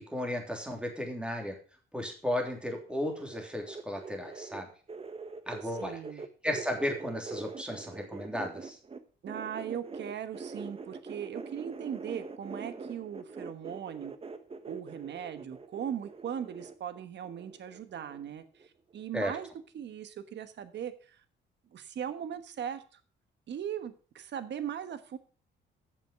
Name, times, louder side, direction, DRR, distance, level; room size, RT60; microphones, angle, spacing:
voice 1, 0.1-1.5 1.9-4.7 5.5-6.0 6.4-8.8 19.1-19.3, left 1 dB, 5° right, 2 dB, 3.3 m, -34 dB
sound 1, 2.5-9.0 9.3-18.3 18.6-19.0 19.3-19.4, right 4 dB, 30° right, 1.2 m, -44 dB
voice 2, 5.8-6.2 9.2-14.1 14.7-18.7 18.9-19.5 19.7-21.2 21.7-23.0 23.5-25.2, right 9 dB, 60° right, 11 dB, 1.3 m, -39 dB
9.0 x 7.0 x 6.3 m, 0.39 s
cardioid pair, 90°, 20 cm